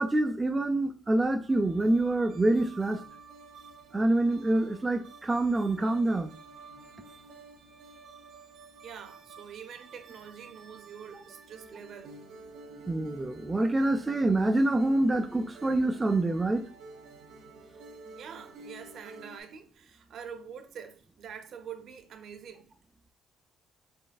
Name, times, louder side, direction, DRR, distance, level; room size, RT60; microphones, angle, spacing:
voice 1, 0.0-3.0 3.9-6.3 12.9-16.7, right 2 dB, 15° right, 0.3 m, -26 dB
sound 1, 1.5-19.4, right 3 dB, 75° right, 1.0 m, -50 dB
voice 2, 8.8-12.2 18.2-22.7, right 7 dB, 55° right, 0.6 m, -45 dB
5.2 x 3.1 x 2.3 m
cardioid pair, 130°, 0 cm